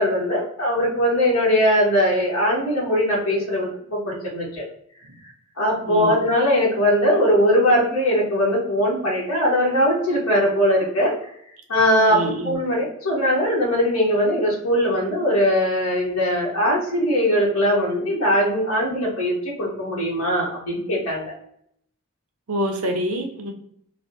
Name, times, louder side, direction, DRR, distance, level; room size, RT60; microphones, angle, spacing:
voice 1, 0.0-4.6 5.6-11.1 11.7-21.3, equal, 80° left, -6 dB, 1.2 m, -20 dB
voice 2, 12.1-12.5 22.5-23.5, equal, 85° right, 3 dB, 0.7 m, -26 dB
3.3 x 2.1 x 2.6 m, 0.68 s
head